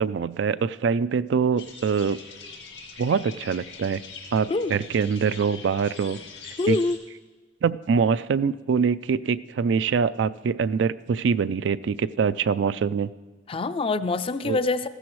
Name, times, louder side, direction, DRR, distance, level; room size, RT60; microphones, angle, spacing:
voice 1, 0.0-2.2 3.0-4.0 4.3-6.2 6.7-6.8 7.6-13.1 14.4-14.6, right 6 dB, 75° right, 15 dB, 0.4 m, -24 dB
sound 1, 1.6-7.0, left 5 dB, 80° left, 2.0 m, -43 dB
voice 2, 6.6-7.0 13.5-14.9, left 3 dB, 30° left, 13 dB, 0.4 m, -25 dB
15.0 x 13.0 x 3.1 m, 1.3 s
head